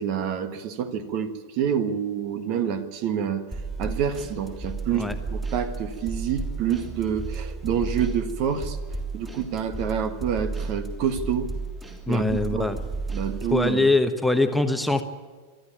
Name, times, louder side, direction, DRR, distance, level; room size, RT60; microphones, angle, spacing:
voice 1, 0.0-3.5 3.8-8.8 9.1-11.5 12.1-12.7 13.1-13.9, right 8 dB, 40° right, 10 dB, 1.5 m, -27 dB
sound 1, 3.5-13.7, right 3 dB, 15° right, 3.5 m, -33 dB
voice 2, 12.1-12.8 13.5-15.0, left 2 dB, ahead, 6 dB, 1.1 m, -22 dB
23.0 x 13.0 x 8.8 m, 1.5 s
figure-of-eight pair, 90°, 0 cm